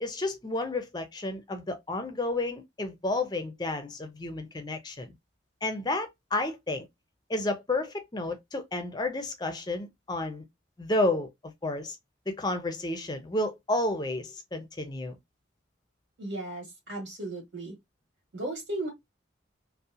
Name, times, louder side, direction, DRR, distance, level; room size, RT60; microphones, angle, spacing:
voice 1, 0.0-5.1 5.6-6.9 7.3-10.4 10.8-12.0 12.3-15.2, left 2 dB, 20° left, 0.5 m, -31 dB
voice 2, 16.2-17.7 18.3-18.9, right 1 dB, 75° right, 1.4 m, -35 dB
2.8 x 2.1 x 2.3 m
head